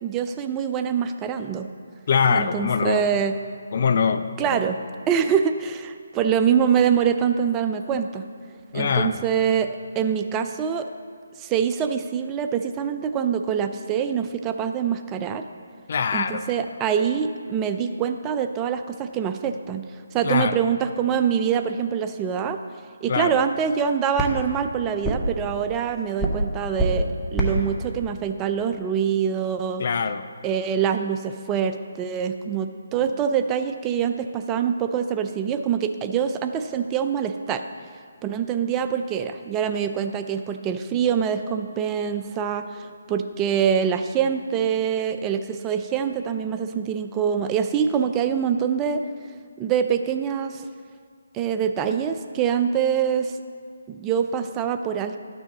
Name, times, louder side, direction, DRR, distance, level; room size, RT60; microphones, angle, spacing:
voice 1, 0.0-1.7 2.3-3.3 4.4-4.8 5.1-8.2 8.7-9.7 10.0-10.9 11.4-15.4 16.1-22.6 23.0-29.8 30.4-37.6 38.2-49.0 49.6-50.7 51.3-53.4 53.9-55.2, right 7 dB, 20° right, 7 dB, 0.4 m, -24 dB
voice 2, 2.1-3.1 3.7-4.6 8.7-9.2 15.9-16.4 20.2-20.6 23.1-23.4 29.8-30.3, left 6 dB, 50° left, 10 dB, 0.4 m, -23 dB
sound 1, 24.2-29.6, right 1 dB, ahead, 1.0 m, -29 dB
12.0 x 6.2 x 4.0 m, 2.1 s
figure-of-eight pair, 145°, 0 cm